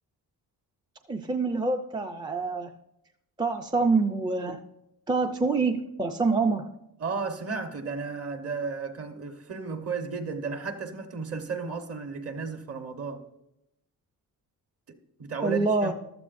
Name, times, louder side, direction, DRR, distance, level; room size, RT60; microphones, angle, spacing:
voice 1, 1.1-2.7 3.4-4.6 5.1-6.7 15.4-15.9, right 3 dB, 15° right, 0.4 m, -26 dB
voice 2, 7.0-13.2 14.9-15.9, right 4 dB, 40° right, 1.1 m, -34 dB
14.5 x 13.0 x 2.5 m
wide cardioid pair, 175°, 36 cm